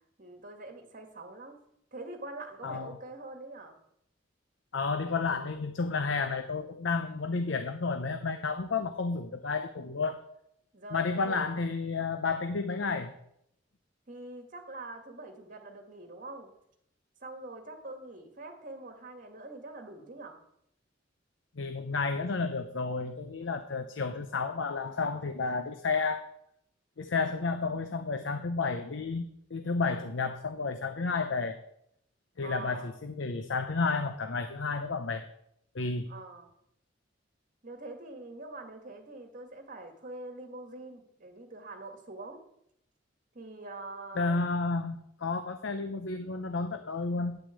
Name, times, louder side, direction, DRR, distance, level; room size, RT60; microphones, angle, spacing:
voice 1, 0.2-1.6 1.9-3.8 10.7-11.4 14.1-16.5 17.2-20.4 32.4-32.9 36.1-36.5 37.6-42.4 43.3-44.4, right 2 dB, 45° right, 4 dB, 2.2 m, -44 dB
voice 2, 2.6-3.0 4.7-10.2 10.9-13.1 21.6-26.2 27.0-31.6 32.4-35.3 35.7-36.1 44.2-47.4, left 4 dB, 80° left, 9 dB, 0.7 m, -31 dB
10.0 x 6.2 x 8.3 m, 0.75 s
head